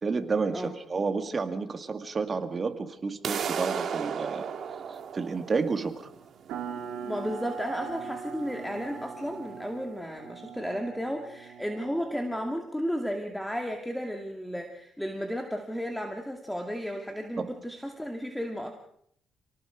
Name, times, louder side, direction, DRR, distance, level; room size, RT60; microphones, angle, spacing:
voice 1, 0.0-4.5 4.9-6.1 17.4-17.5, right 4 dB, 35° right, 8 dB, 2.2 m, -30 dB
sound 1, 3.2-9.2, right 7 dB, 60° right, 2.1 m, -36 dB
sound 2, 6.5-12.7, right 6 dB, 90° right, 2.7 m, -40 dB
voice 2, 7.1-18.7, equal, 5° left, 3 dB, 2.3 m, -33 dB
28.5 x 18.5 x 5.1 m, 0.69 s
cardioid pair, 90°, 0 cm